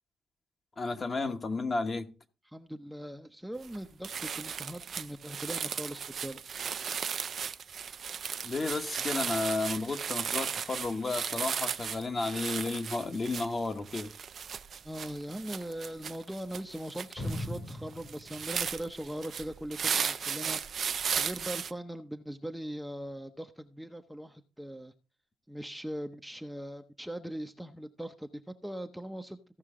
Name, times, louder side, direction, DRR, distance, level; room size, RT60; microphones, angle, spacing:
voice 1, 0.8-2.1 8.4-14.1, left 3 dB, 35° left, 1.1 m, -32 dB
voice 2, 2.5-6.4 14.8-24.9 25.5-28.3 28.6-29.4, equal, 5° right, 0.7 m, -40 dB
sound 1, 3.6-3.8 4.0-21.7, right 7 dB, 50° right, 0.5 m, -36 dB
sound 2, 17.2-19.7, left 1 dB, 65° left, 3.1 m, -39 dB
15.0 x 5.6 x 3.7 m
cardioid pair, 90°, 0 cm